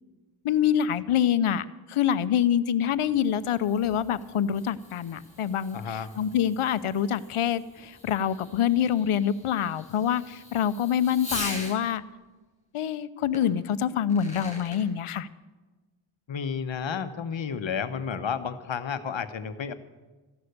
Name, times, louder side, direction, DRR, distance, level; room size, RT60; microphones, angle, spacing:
voice 1, 0.4-12.0 12.7-15.3, left 9 dB, 85° left, 15 dB, 0.7 m, -26 dB
Fireworks, 2.9-11.8 13.3-13.4 13.9-14.8, left 1 dB, 15° left, 5.4 m, -42 dB
voice 2, 5.7-6.1 16.3-19.7, left 6 dB, 65° left, 10 dB, 1.0 m, -31 dB
14.5 x 11.5 x 6.6 m, 1.2 s
wide cardioid pair, 105°, 49 cm